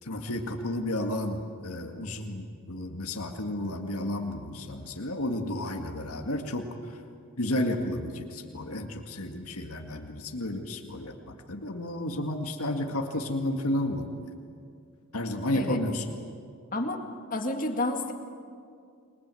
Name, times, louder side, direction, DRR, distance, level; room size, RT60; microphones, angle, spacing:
voice 1, 0.0-7.0 7.4-14.1 15.1-16.0, left 1 dB, 85° left, 3 dB, 2.0 m, -32 dB
voice 2, 15.5-15.8 16.7-17.0 17.3-18.1, left 2 dB, 35° left, 4 dB, 2.1 m, -30 dB
30.0 x 22.0 x 7.8 m, 2.3 s
head